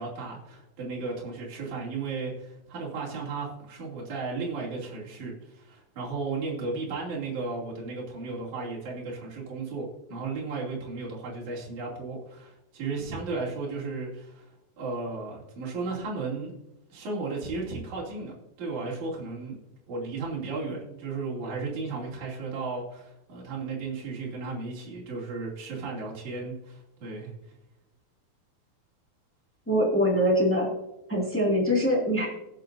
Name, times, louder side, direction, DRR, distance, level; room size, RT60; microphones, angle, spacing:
voice 1, 0.0-14.5 14.8-16.5 16.9-19.6 19.9-27.3, right 3 dB, 55° right, -5 dB, 4.0 m, -34 dB
voice 2, 29.7-30.7 31.1-32.3, equal, 5° left, -2 dB, 1.3 m, -23 dB
17.0 x 8.4 x 2.6 m, 0.91 s
omnidirectional pair, 4.3 m